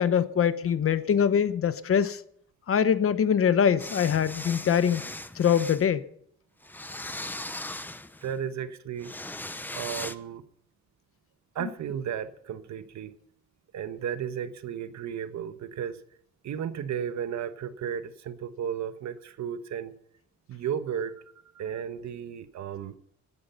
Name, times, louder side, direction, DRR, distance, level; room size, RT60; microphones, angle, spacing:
voice 1, 0.0-2.2 2.7-5.0 5.3-6.0 11.6-11.7, left 8 dB, 50° left, 1.0 m, -23 dB
sound 1, 3.8-5.8 6.6-8.3 9.0-10.2, left 1 dB, 5° left, 0.7 m, -38 dB
voice 2, 8.2-9.1 9.7-10.4 11.5-13.1 13.7-16.0 16.4-19.9 20.5-21.1 21.5-22.9, right 8 dB, 70° right, 1.2 m, -34 dB
17.0 x 11.0 x 5.7 m
cardioid pair, 145°, 29 cm